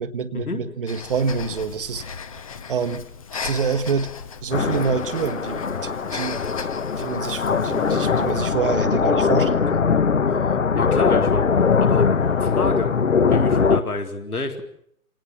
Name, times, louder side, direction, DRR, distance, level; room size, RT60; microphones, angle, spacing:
voice 1, 0.0-2.0 2.7-3.0 3.3-4.1 4.4-6.7 7.0-9.9, right 5 dB, 35° right, 9 dB, 1.3 m, -27 dB
Breathing, 0.9-8.4, left 6 dB, 25° left, 0.9 m, -36 dB
sound 1, 4.5-13.8, left 5 dB, 55° left, 1.7 m, -21 dB
voice 2, 10.8-11.5 11.8-12.1 12.4-12.9 13.3-14.6, left 3 dB, 70° left, 5 dB, 3.9 m, -28 dB
27.5 x 18.0 x 7.3 m, 0.68 s
figure-of-eight pair, 140°, 45 cm